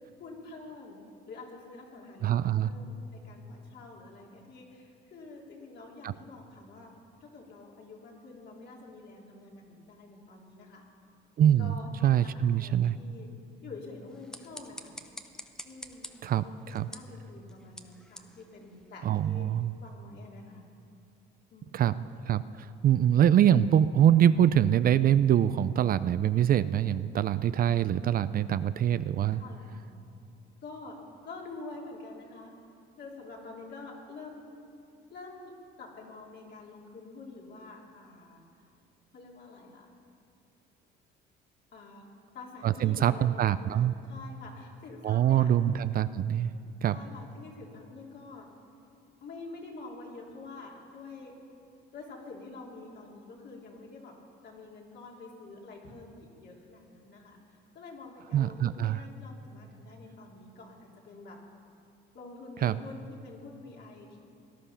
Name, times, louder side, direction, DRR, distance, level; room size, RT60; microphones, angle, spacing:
voice 1, 0.2-1.0 1.3-6.9 7.2-10.8 11.6-13.3 13.6-15.0 15.6-19.5 19.8-20.7 21.5-21.9 29.4-29.8 30.6-31.0 31.2-32.5 33.0-34.5 35.1-35.5 35.8-38.4 39.1-39.9 41.7-42.1 42.3-45.5 46.9-48.5 49.2-51.3 51.9-54.1 54.4-61.4 62.1-64.2, left 3 dB, 55° left, -2 dB, 3.2 m, -47 dB
voice 2, 2.2-2.7 6.0-6.1 11.4-11.8 12.0-13.0 16.2-16.9 19.0-19.7 21.7-29.4 42.6-43.9 45.0-46.5 46.8-47.0 58.3-59.0 62.6-62.8, right 10 dB, 45° right, 14 dB, 0.4 m, -24 dB
sound 1, 14.0-19.3, equal, 5° left, 0.8 m, -49 dB
19.0 x 11.0 x 5.7 m, 2.5 s
cardioid pair, 100°, 20 cm